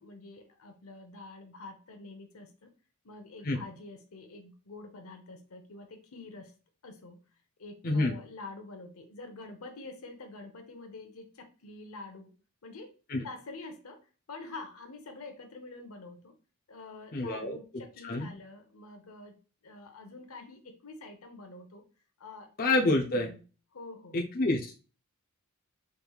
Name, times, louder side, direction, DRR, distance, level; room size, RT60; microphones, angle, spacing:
voice 1, 0.0-2.7 3.0-6.5 6.8-7.2 7.6-12.3 12.6-12.9 13.2-16.3 16.7-19.4 19.6-21.8 22.2-22.5 22.8-23.4 23.7-24.2, left 3 dB, 80° left, 5 dB, 0.9 m, -47 dB
voice 2, 17.1-17.6 18.0-18.3 22.6-23.3 24.1-24.7, left 2 dB, 40° left, 1 dB, 0.6 m, -27 dB
5.1 x 3.1 x 2.3 m, 0.35 s
head